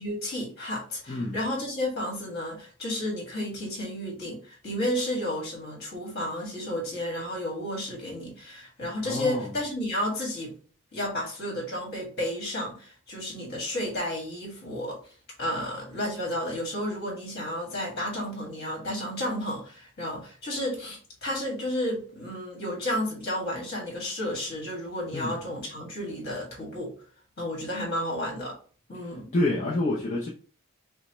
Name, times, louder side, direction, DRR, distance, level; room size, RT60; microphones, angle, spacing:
voice 1, 0.0-10.5 10.9-15.0 15.4-26.9 27.4-28.6 28.9-29.3, left 1 dB, 50° left, 1.9 m, -32 dB
voice 2, 1.1-1.4 9.0-9.5 25.1-25.4 28.9-30.3, left 2 dB, 30° left, 0.6 m, -28 dB
5.6 x 2.1 x 3.0 m
head